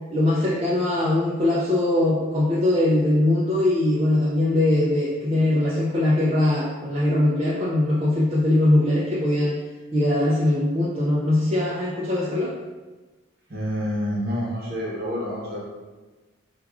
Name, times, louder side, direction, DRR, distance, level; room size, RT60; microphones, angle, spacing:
voice 1, 0.1-9.6 9.9-12.5, left 1 dB, 25° right, -7 dB, 0.4 m, -21 dB
voice 2, 13.5-15.6, equal, 45° right, -5 dB, 0.8 m, -28 dB
4.6 x 2.3 x 2.3 m, 1.2 s
head